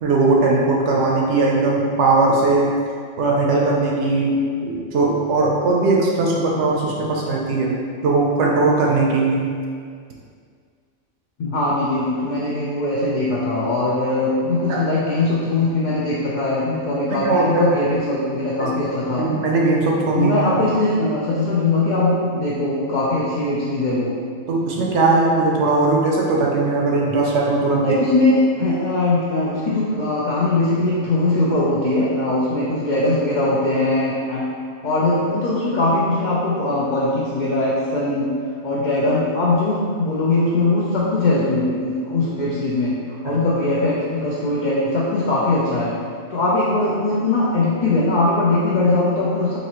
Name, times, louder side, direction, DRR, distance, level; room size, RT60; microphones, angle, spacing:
voice 1, 0.0-2.7 3.2-7.7 8.0-9.4 14.7-14.9 17.1-17.7 18.6-18.7 19.2-20.7 24.5-28.0 43.3-43.4, right 3 dB, 65° right, -2 dB, 0.8 m, -19 dB
voice 2, 11.4-19.3 20.1-24.2 27.8-34.5 34.8-38.4 38.6-43.0 43.2-46.0 46.3-49.6, left 2 dB, 90° left, -7 dB, 0.4 m, -20 dB
4.0 x 2.6 x 2.9 m, 2.1 s
omnidirectional pair, 1.4 m